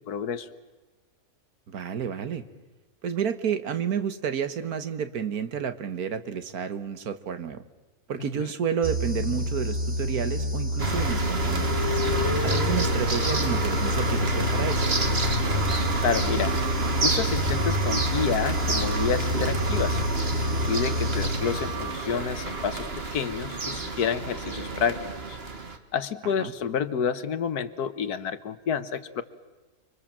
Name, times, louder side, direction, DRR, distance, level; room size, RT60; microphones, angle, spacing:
voice 1, 0.1-0.5 8.2-8.5 16.0-16.5 17.0-20.0 20.7-25.0 25.3-25.4 25.9-29.2, left 7 dB, 80° left, 13 dB, 1.6 m, -29 dB
voice 2, 1.7-2.4 3.0-7.6 8.1-11.8 12.4-15.0 26.4-26.5, right 7 dB, 75° right, 10 dB, 1.7 m, -30 dB
sound 1, 8.8-22.0, equal, 55° right, 2.8 m, -29 dB
sound 2, 10.4-10.8 11.2-14.3, left 7 dB, 60° left, 1.4 m, -35 dB
sound 3, 10.8-25.8, right 2 dB, 40° right, 1.9 m, -28 dB
30.0 x 23.5 x 7.4 m, 1.2 s
omnidirectional pair, 1.6 m